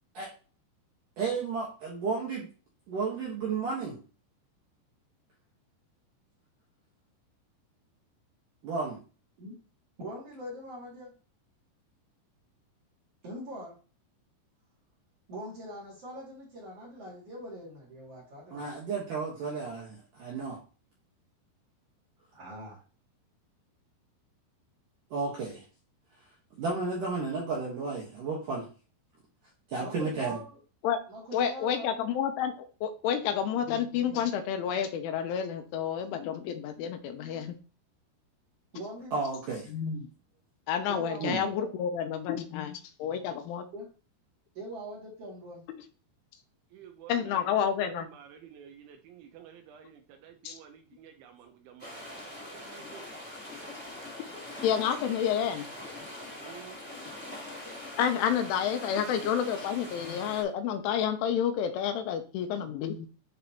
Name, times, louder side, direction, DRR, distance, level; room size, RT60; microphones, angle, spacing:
voice 1, 1.2-2.5 2.9-4.0 8.6-9.0 18.5-20.6 25.1-25.6 26.6-28.7 29.7-30.4 39.1-39.7 41.2-41.4, right 4 dB, 65° right, -4 dB, 2.2 m, -32 dB
voice 2, 10.0-11.1 13.2-13.8 15.3-18.7 22.3-22.8 29.8-30.6 31.1-32.2 38.7-39.1 40.9-41.7 43.7-43.9 44.5-45.6, right 1 dB, 40° right, -4 dB, 2.5 m, -42 dB
voice 3, 31.3-37.6 39.7-40.1 40.7-43.7 47.1-48.1 50.4-50.6 54.6-55.7 58.0-63.1, left 8 dB, 80° left, 7 dB, 3.1 m, -30 dB
voice 4, 46.7-53.1 56.4-56.8, right 9 dB, 80° right, 5 dB, 3.0 m, -51 dB
sound 1, 51.8-60.4, left 1 dB, 5° left, 1.9 m, -43 dB
10.5 x 4.0 x 2.9 m, 0.36 s
omnidirectional pair, 5.7 m